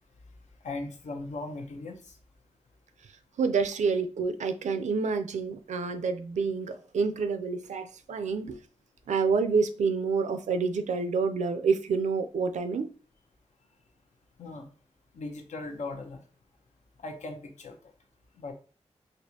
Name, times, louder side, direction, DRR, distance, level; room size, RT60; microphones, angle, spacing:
voice 1, 0.6-2.0 14.4-14.7 15.1-16.2 17.0-17.8 18.4-18.5, left 2 dB, 85° left, 0.7 m, -38 dB
voice 2, 3.4-8.6 9.1-12.9, right 5 dB, 85° right, 0.4 m, -28 dB
4.3 x 2.5 x 2.8 m
cardioid pair, 65°, 12 cm